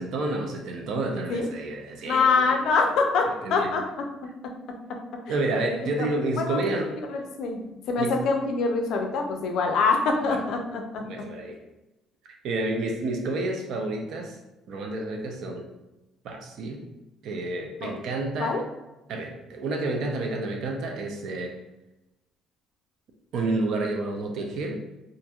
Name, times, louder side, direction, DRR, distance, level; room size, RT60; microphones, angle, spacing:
voice 1, 0.0-2.6 3.4-3.7 5.3-6.9 8.0-8.2 10.2-10.4 11.0-11.6 12.4-14.4 14.7-15.6 16.2-16.8 17.2-18.6 19.1-21.6 23.3-24.8, right 2 dB, 60° right, 2 dB, 0.4 m, -30 dB
voice 2, 2.1-3.8 5.3-5.4 5.8-6.1 6.4-6.6 6.9-11.0 17.8-17.9 18.4-18.6, left 4 dB, 60° left, 3 dB, 0.4 m, -25 dB
2.8 x 2.5 x 2.3 m, 1.0 s
cardioid pair, 165°, 0 cm